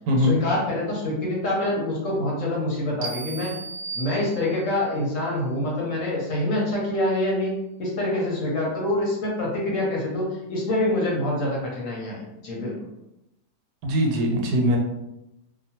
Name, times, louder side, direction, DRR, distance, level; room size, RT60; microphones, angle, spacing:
voice 1, 0.2-3.5 3.9-7.5 7.8-12.7, left 1 dB, 60° left, -4 dB, 0.9 m, -26 dB
sound 1, 3.0-4.8, right 4 dB, 70° right, 0.7 m, -36 dB
voice 2, 13.8-14.8, equal, 90° right, 1 dB, 1.3 m, -21 dB
3.0 x 2.1 x 2.7 m, 0.90 s
omnidirectional pair, 1.8 m